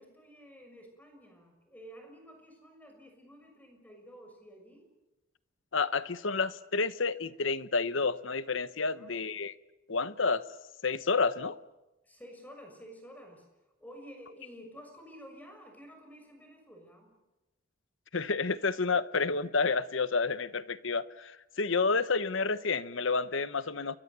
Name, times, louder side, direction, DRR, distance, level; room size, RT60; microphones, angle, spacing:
voice 1, 0.0-4.9 8.9-9.2 12.0-13.5 13.8-17.1, equal, 10° left, 6.5 m, -51 dB
voice 2, 5.7-9.5 9.9-10.4 10.8-11.6 18.1-24.0, left 4 dB, 75° left, 1.0 m, -30 dB
30.0 x 23.5 x 6.9 m
head